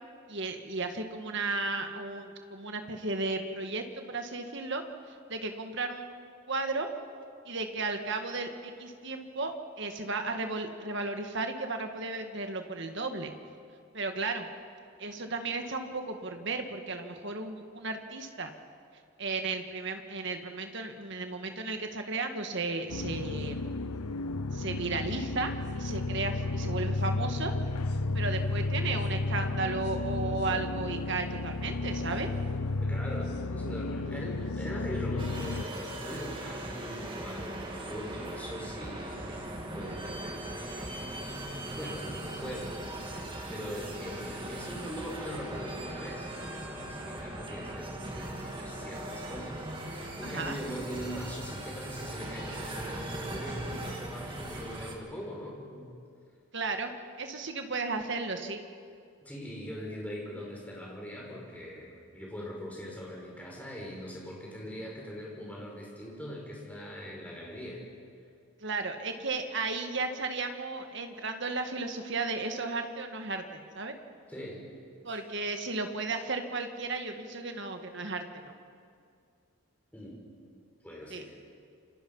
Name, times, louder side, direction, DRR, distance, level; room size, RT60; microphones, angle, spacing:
voice 1, 0.3-4.8 5.3-6.1 6.5-6.9 7.5-13.3 13.9-14.5 15.0-18.5 19.2-23.6 24.5-27.5 28.1-32.3 50.2-50.6 56.5-56.9 57.2-58.6 68.6-74.0 75.1-78.5 81.1-81.2, right 3 dB, 55° right, 5 dB, 1.9 m, -34 dB
sound 1, 22.9-35.6, left 2 dB, 90° left, 0.7 m, -32 dB
voice 2, 32.8-41.0 41.8-55.9 59.2-67.8 74.3-74.6 75.1-75.2 79.9-80.2 80.8-81.4, equal, 5° left, -3 dB, 5.3 m, -41 dB
sound 2, 35.2-54.9, right 1 dB, 20° right, 2.4 m, -39 dB
28.5 x 25.5 x 5.6 m, 2.3 s
head